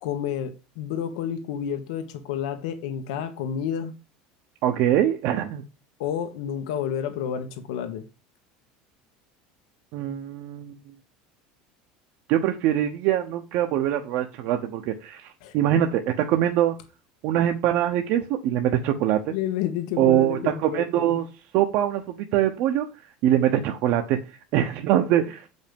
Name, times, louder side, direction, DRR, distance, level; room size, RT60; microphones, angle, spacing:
voice 1, 0.0-3.9 6.0-8.0 15.4-15.5 19.3-21.2, left 9 dB, 85° left, 1.3 m, -30 dB
voice 2, 4.6-5.6 9.9-10.7 12.3-16.8 17.2-19.3 20.0-21.3 21.5-22.9 23.2-25.5, right 11 dB, 55° right, 0.8 m, -23 dB
8.0 x 5.4 x 5.3 m
cardioid pair, 160°, 4 cm